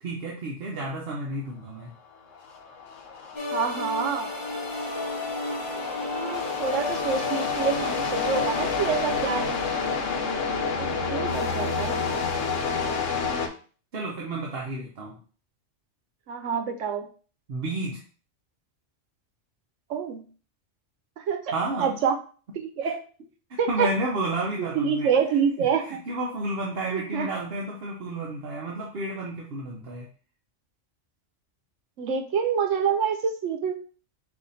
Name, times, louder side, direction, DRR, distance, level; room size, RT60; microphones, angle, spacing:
voice 1, 0.0-1.9 13.9-15.2 17.5-18.0 21.4-21.9 23.7-25.1 25.6-30.1, right 2 dB, 55° right, -2 dB, 1.0 m, -31 dB
sound 1, 2.4-13.5, left 5 dB, 85° left, 1.2 m, -29 dB
Cinematic Strings of Mystery, 3.3-10.3, left 2 dB, 20° left, 0.7 m, -34 dB
voice 2, 3.5-4.3 6.1-9.6 11.1-12.0 16.3-17.1 19.9-20.2 21.2-21.5 21.8-22.2 22.5-23.0 23.6-23.9 24.6-26.0 26.9-27.3 32.0-33.8, right 6 dB, 90° right, 5 dB, 1.1 m, -27 dB
4.8 x 2.5 x 4.1 m, 0.39 s
omnidirectional pair, 1.2 m